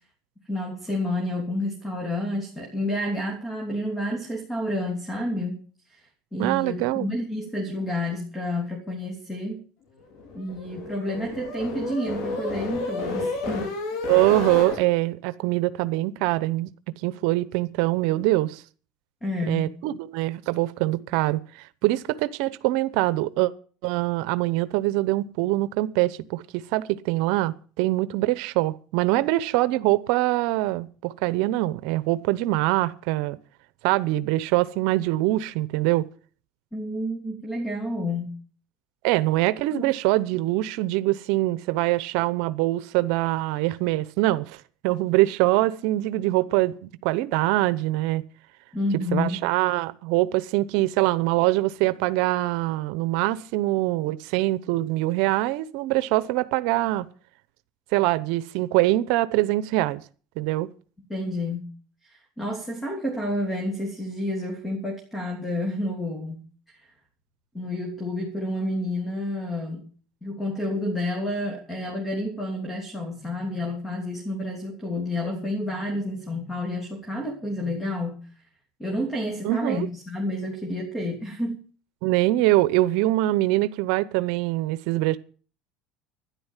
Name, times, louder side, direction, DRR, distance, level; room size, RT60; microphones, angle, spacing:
voice 1, 0.5-5.6 5.9-6.0 6.3-9.6 10.3-13.7 19.2-19.7 36.7-38.4 39.8-39.9 48.7-49.4 61.1-61.7 62.0-66.8 67.5-69.9 70.2-78.3 78.8-81.6, left 1 dB, 15° left, 3.2 m, -30 dB
voice 2, 6.4-7.1 14.1-16.7 17.0-18.6 19.5-23.5 23.8-33.4 33.8-36.1 39.0-48.2 49.1-57.0 57.9-60.0 60.4-60.7 79.4-79.9 82.0-85.2, right 17 dB, 75° right, 0.8 m, -24 dB
sound 1, 10.1-14.8, left 3 dB, 70° left, 5.2 m, -31 dB
12.5 x 10.5 x 7.3 m
supercardioid pair, 130°, 0 cm